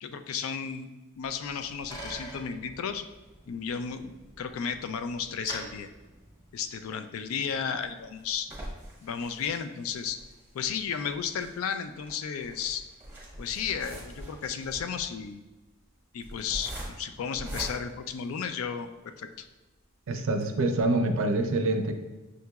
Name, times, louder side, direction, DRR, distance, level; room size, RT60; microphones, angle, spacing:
voice 1, 0.0-0.9 1.2-3.0 3.5-5.9 6.5-8.5 9.0-10.2 10.5-12.8 13.4-15.4 16.1-19.5, left 7 dB, 75° left, 9 dB, 0.3 m, -33 dB
Bicycle, 1.3-6.9, equal, 15° left, 1.3 m, -46 dB
sound 1, 7.5-18.9 19.4-19.5 19.8-19.9 20.3-20.4, right 1 dB, 10° right, 0.8 m, -44 dB
voice 2, 20.1-21.9, right 2 dB, 65° right, 6 dB, 0.4 m, -26 dB
6.3 x 2.9 x 2.3 m, 1.1 s
head